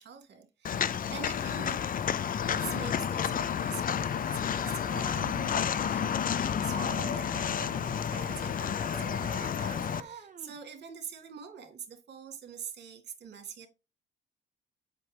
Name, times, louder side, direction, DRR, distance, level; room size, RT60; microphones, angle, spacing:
voice 1, 0.0-1.8 2.5-13.7, right 7 dB, 60° right, 2.3 m, -45 dB
Walk footsteps, 0.6-10.0, left 8 dB, 45° left, 0.5 m, -31 dB
sound 1, 4.0-6.2 6.7-10.6, right 6 dB, 40° right, 1.4 m, -46 dB
8.3 x 5.8 x 3.4 m
cardioid pair, 90°, 20 cm